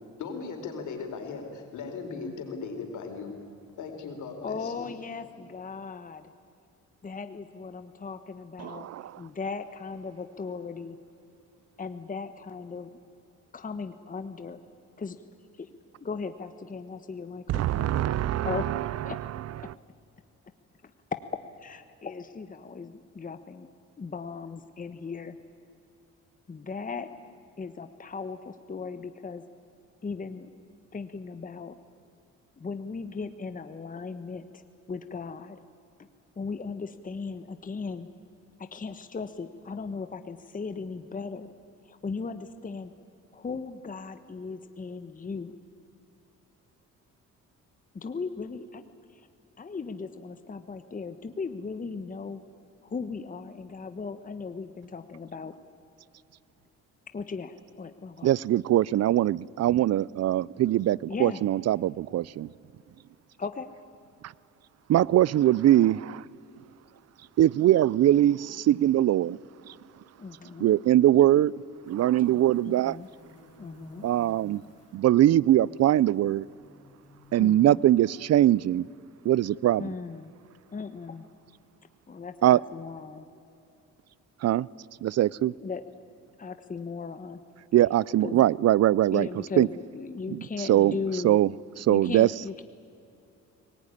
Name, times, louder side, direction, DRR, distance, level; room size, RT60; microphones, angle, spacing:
voice 1, 0.2-3.3 3.8-4.9, left 4 dB, 75° left, 4.6 m, -37 dB
voice 2, 4.4-6.3 7.0-8.9 9.2-11.0 11.8-12.9 13.5-14.6 15.0-15.2 15.6-15.7 16.0-17.9 18.4-18.7 19.0-19.2 19.6-19.7 20.8-20.9 21.6-23.7 24.0-25.4 26.5-27.1 27.6-29.4 30.0-30.5 30.9-31.8 32.6-34.6 34.9-35.6 36.4-38.1 38.6-41.5 41.8-42.9 43.3-45.6 47.9-48.8 49.1-49.3 49.6-52.4 52.8-55.5 57.1-58.3 61.1-61.4 63.4-63.7 70.2-70.7 72.6-73.1 73.6-74.1 77.4-77.8 79.8-80.3 80.7-81.3 82.1-83.3 85.6-85.8 86.4-87.4 88.2-88.5 89.1-91.4 91.9-92.6, left 4 dB, 25° left, 1.3 m, -37 dB
voice 3, 8.6-9.0 17.5-18.9 19.6-19.7 58.2-62.5 64.9-66.2 67.4-69.4 70.6-71.5 71.9-73.0 74.0-74.6 74.9-76.5 77.3-78.9 79.2-79.8 82.4-82.6 84.4-84.7 85.0-85.5 87.7-89.3 89.6-89.7 90.3-90.4 90.7-90.9 91.2-91.5 91.8-92.3, right 13 dB, 55° right, 0.5 m, -22 dB
sound 1, 71.8-77.5, left 1 dB, 55° left, 4.1 m, -55 dB
23.0 x 19.5 x 9.9 m
cardioid pair, 90°, 30 cm